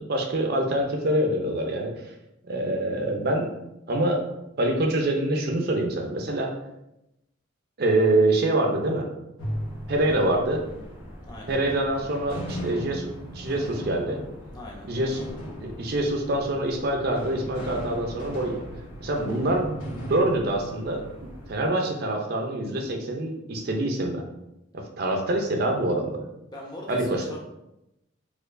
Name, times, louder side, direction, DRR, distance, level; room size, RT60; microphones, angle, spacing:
voice 1, 0.0-2.1 2.5-3.5 3.9-4.2 4.6-6.5 7.8-9.0 9.9-10.6 11.5-13.1 13.3-14.2 14.9-15.2 15.6-18.6 19.0-19.7 20.1-21.0 21.5-24.2 24.7-26.2 26.9-27.2, right 1 dB, 50° right, 2 dB, 0.5 m, -25 dB
sound 1, 9.4-21.7, equal, 90° left, 0.9 m, -37 dB
voice 2, 11.2-11.6 14.5-14.9 26.5-27.4, left 1 dB, 20° left, -2 dB, 0.6 m, -41 dB
4.3 x 2.4 x 2.5 m, 0.88 s
head